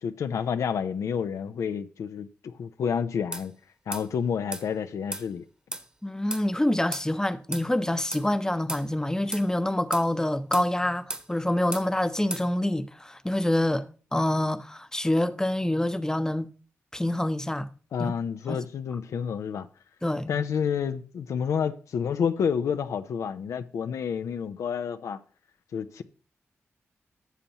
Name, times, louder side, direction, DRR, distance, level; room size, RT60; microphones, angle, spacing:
voice 1, 0.0-3.5 3.9-5.5 17.9-19.7 20.3-25.2 25.7-26.0, left 7 dB, 80° left, 0.5 m, -29 dB
sound 1, 3.3-3.5 3.9-4.1 4.5-4.7 5.1-5.3 5.7-5.9 6.3-6.5 6.9-7.1 7.5-7.7 8.1-8.3 8.7-8.9 9.3-9.5 9.9-10.1 10.5-10.7 11.1-11.3 11.7-11.9 12.3-12.5, right 1 dB, 15° right, 1.2 m, -35 dB
voice 2, 6.0-13.9 14.1-16.5 16.9-17.7 18.0-18.1 18.5-18.6 20.0-20.3, left 1 dB, 10° left, 0.7 m, -26 dB
12.5 x 6.9 x 2.9 m
supercardioid pair, 45°, 5 cm